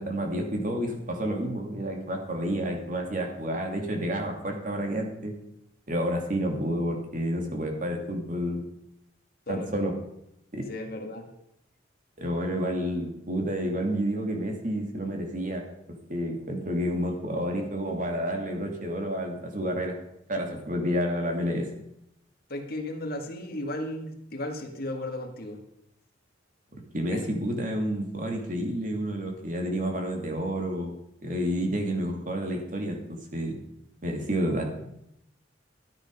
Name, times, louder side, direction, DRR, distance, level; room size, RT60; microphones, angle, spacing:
voice 1, 0.0-5.3 5.9-8.6 9.5-9.9 10.5-10.6 12.2-15.6 15.9-19.9 20.3-21.7 26.9-30.9 31.2-33.6 34.0-34.7, equal, 45° right, 2 dB, 2.7 m, -30 dB
voice 2, 10.7-11.3 22.5-25.6 27.1-27.3, left 1 dB, 50° left, 3 dB, 1.9 m, -35 dB
13.5 x 9.9 x 5.4 m, 0.79 s
head